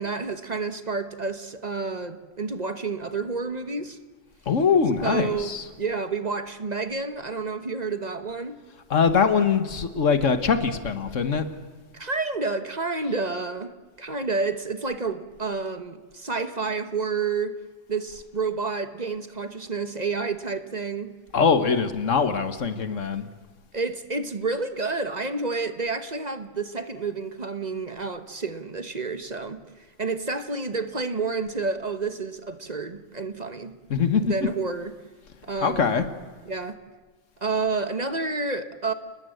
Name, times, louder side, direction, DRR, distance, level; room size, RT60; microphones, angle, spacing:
voice 1, 0.0-4.0 5.0-8.6 11.9-13.7 14.0-17.6 17.9-21.1 23.7-29.6 30.0-33.8 34.2-34.9 35.4-36.0 36.5-36.8 37.4-38.9, right 4 dB, 35° right, 10 dB, 1.2 m, -29 dB
voice 2, 4.5-5.6 8.9-11.5 21.3-23.3 33.9-34.2 35.6-36.0, left 6 dB, 90° left, 10 dB, 1.7 m, -22 dB
30.0 x 20.0 x 7.9 m, 1.5 s
omnidirectional pair, 1.2 m